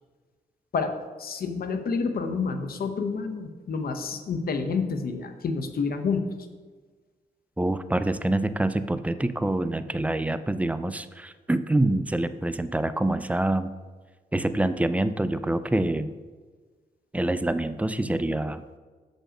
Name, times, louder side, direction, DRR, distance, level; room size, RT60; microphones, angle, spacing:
voice 1, 1.2-6.3, left 4 dB, 60° left, 7 dB, 0.8 m, -29 dB
voice 2, 7.6-13.7 14.3-16.1 17.1-18.6, right 1 dB, 10° right, 12 dB, 0.4 m, -26 dB
6.3 x 5.2 x 5.0 m, 1.4 s
cardioid pair, 80°, 17 cm